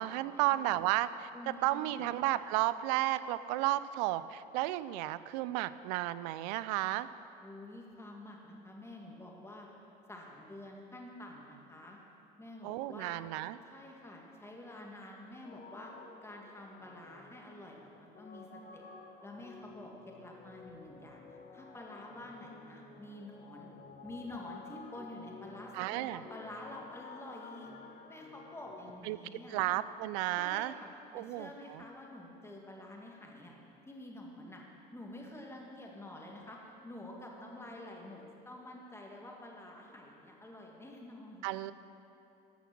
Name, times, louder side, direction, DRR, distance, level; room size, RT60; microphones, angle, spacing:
voice 1, 0.0-1.3 1.6-7.1 12.6-13.6 25.7-26.2 29.1-29.2 29.5-30.7 31.1-31.8 41.4-41.7, right 15 dB, 75° right, 15 dB, 0.4 m, -33 dB
voice 2, 1.3-2.1 7.4-9.7 10.1-12.0 12.4-13.2 13.6-15.9 16.2-18.8 19.2-23.7 24.0-27.7 28.1-29.7 30.4-30.9 31.1-33.5 33.9-34.6 34.9-41.5, left 1 dB, 10° left, -1 dB, 2.0 m, -48 dB
sound 1, 15.4-29.0, left 5 dB, 45° left, 1.1 m, -53 dB
13.0 x 5.9 x 6.0 m, 2.8 s
hypercardioid pair, 80°, 21 cm